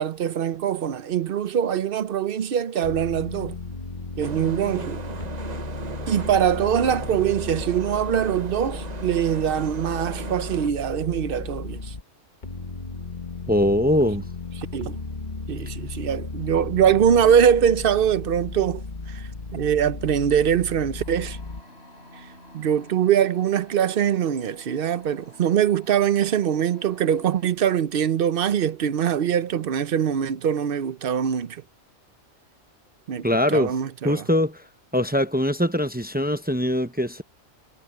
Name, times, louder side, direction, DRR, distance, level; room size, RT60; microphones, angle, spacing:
voice 1, 0.0-3.6 4.2-5.0 6.1-11.9 13.6-14.0 14.6-15.0 15.5-21.4 22.2-22.3 22.5-31.6 33.1-34.3, right 9 dB, 55° right, 0.8 m, -23 dB
sound 1, 2.8-12.0 12.4-21.6, left 3 dB, 40° left, 1.4 m, -35 dB
sound 2, 4.2-10.7, right 5 dB, 35° right, 1.0 m, -38 dB
voice 2, 13.5-14.2 33.2-33.7 34.0-34.6 34.9-37.2, left 1 dB, 10° right, 0.6 m, -22 dB
sound 3, 21.0-27.5, left 1 dB, 60° left, 6.6 m, -50 dB
omnidirectional pair, 1.3 m